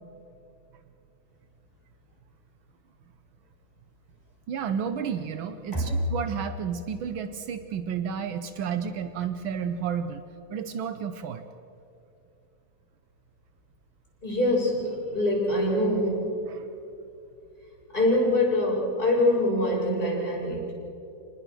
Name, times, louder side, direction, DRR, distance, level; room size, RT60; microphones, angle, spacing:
voice 1, 4.5-10.2 10.5-11.4 16.5-16.7, right 7 dB, 80° right, 9 dB, 1.1 m, -31 dB
voice 2, 14.2-16.3 17.9-20.7, left 1 dB, 15° left, -4 dB, 6.6 m, -24 dB
27.0 x 20.5 x 6.3 m, 2.8 s
omnidirectional pair, 3.4 m